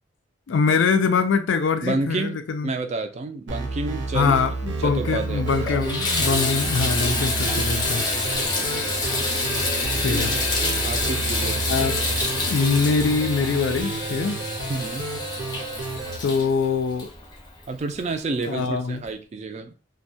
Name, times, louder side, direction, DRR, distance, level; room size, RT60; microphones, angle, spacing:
voice 1, 0.5-2.7 4.1-8.0 10.0-10.3 11.7-12.0 12.4-14.4 16.2-17.1 18.5-19.0, left 5 dB, 80° left, 7 dB, 0.4 m, -23 dB
voice 2, 1.8-4.4 4.8-5.5 8.5-8.9 10.1-10.5 10.8-11.7 14.7-15.0 17.7-20.0, right 3 dB, 35° right, 7 dB, 0.3 m, -30 dB
sound 1, 3.5-16.2, right 3 dB, 75° right, 0.6 m, -31 dB
Water tap faucet / Bathtub (filling or washing), 4.8-4.9 5.4-17.8 18.4-18.5 19.0-19.1, left 2 dB, 25° left, 0.5 m, -27 dB
2.2 x 2.1 x 2.6 m, 0.32 s
head